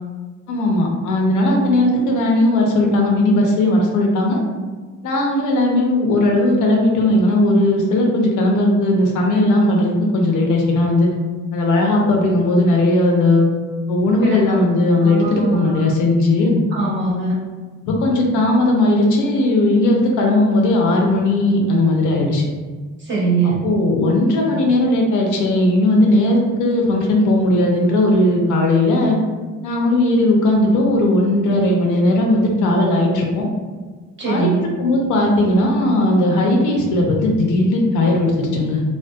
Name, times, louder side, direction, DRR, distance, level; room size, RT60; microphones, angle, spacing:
voice 1, 0.5-4.4 5.0-11.1 11.5-13.5 13.9-16.6 17.8-22.4 23.4-29.2 29.6-33.5 34.3-34.5 34.8-38.8, left 1 dB, 80° left, 0 dB, 0.6 m, -17 dB
voice 2, 14.2-14.6 15.0-15.8 16.7-17.4 23.0-23.6 34.2-34.7, right 4 dB, 40° right, -7 dB, 1.1 m, -22 dB
2.6 x 2.1 x 2.3 m, 1.4 s
cardioid pair, 90°, 30 cm